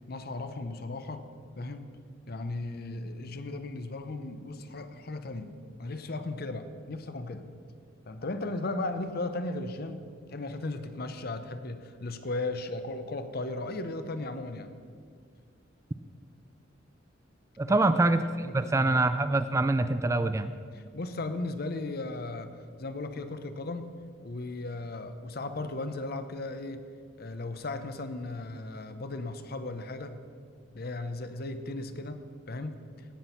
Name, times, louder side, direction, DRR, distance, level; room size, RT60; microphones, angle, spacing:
voice 1, 0.1-1.3 1.6-1.9 2.3-5.5 5.8-7.4 8.1-10.0 10.3-14.7 17.7-17.8 18.4-19.0 20.9-24.0 24.2-26.8 27.2-30.2 30.7-32.2 32.5-32.8, left 2 dB, 50° left, 10 dB, 0.7 m, -36 dB
voice 2, 17.6-18.2 18.5-20.5, right 2 dB, 15° right, 11 dB, 0.3 m, -25 dB
17.0 x 6.2 x 5.7 m, 2.1 s
head